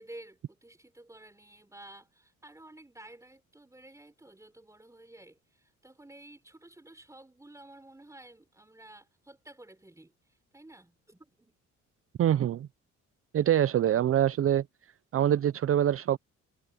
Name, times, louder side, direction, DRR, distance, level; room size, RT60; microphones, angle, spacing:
voice 1, 0.0-11.5, right 1 dB, 10° right, 4.2 m, -52 dB
voice 2, 12.2-12.7 13.3-14.6 15.1-16.2, right 11 dB, 45° right, 0.6 m, -24 dB
cardioid pair, 90°, 30 cm